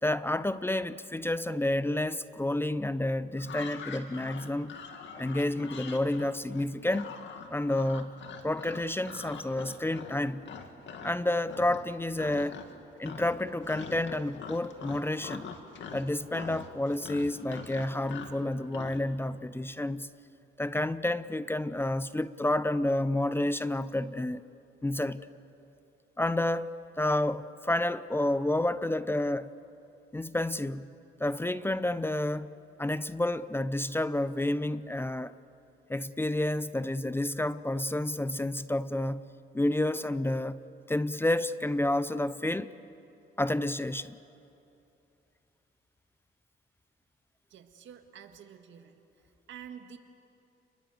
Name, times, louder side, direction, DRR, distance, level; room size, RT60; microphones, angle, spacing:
voice 1, 0.0-4.8 5.1-7.1 7.5-10.5 11.0-12.6 13.0-15.5 15.9-20.1 20.6-24.4 24.8-25.3 26.2-26.7 27.0-29.5 30.1-30.9 31.2-32.5 32.8-35.3 35.9-39.3 39.5-40.6 40.9-42.7 43.4-44.2, left 1 dB, 10° left, 0.6 m, -30 dB
sound 1, 3.4-11.2 11.5-11.9 12.2-12.8 13.0-19.0, left 6 dB, 70° left, 2.2 m, -44 dB
voice 2, 47.5-49.0 49.5-50.0, right 8 dB, 70° right, 1.8 m, -48 dB
29.5 x 22.0 x 7.9 m
cardioid pair, 90°, 20 cm